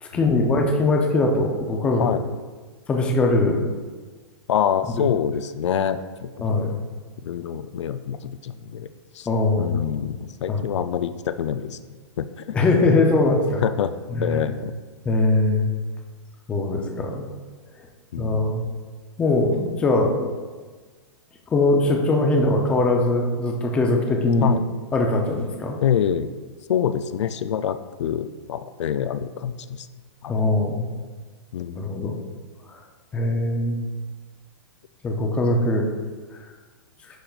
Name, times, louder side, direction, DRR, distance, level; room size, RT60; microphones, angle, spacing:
voice 1, 0.0-2.0 2.9-3.7 6.4-6.7 9.3-9.8 10.5-10.6 12.5-13.6 14.2-14.4 15.0-15.7 16.5-17.3 18.2-18.6 19.2-20.3 21.5-24.5 24.9-25.8 30.3-30.9 31.8-32.2 32.7-32.8 33.1-33.8 35.0-35.9, left 2 dB, 5° left, 1 dB, 0.4 m, -21 dB
voice 2, 4.5-6.7 7.2-8.9 9.1-9.3 9.6-11.8 12.2-12.6 13.6-14.8 18.1-18.6 24.4-24.6 25.8-26.3 26.7-29.9 30.2-30.4 31.5-31.9, left 9 dB, 80° left, 12 dB, 0.4 m, -26 dB
10.0 x 5.1 x 2.3 m, 1.4 s
hypercardioid pair, 165°, 15 cm